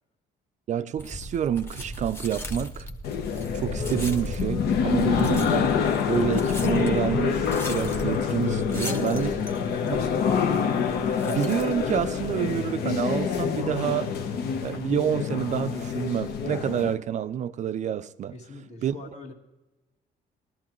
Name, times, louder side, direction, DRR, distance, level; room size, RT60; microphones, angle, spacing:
voice 1, 0.7-2.9 3.5-9.3 9.9-10.0 11.3-14.1 14.6-18.3 18.8-19.0, right 9 dB, 50° right, 0.4 m, -28 dB
sound 1, 1.0-12.3, equal, 15° left, 1.0 m, -37 dB
sound 2, 3.0-16.9, left 7 dB, 85° left, 0.9 m, -26 dB
voice 2, 8.7-10.0 18.3-19.3, left 3 dB, 45° left, 1.7 m, -42 dB
15.5 x 12.0 x 3.0 m
cardioid pair, 105°, 16 cm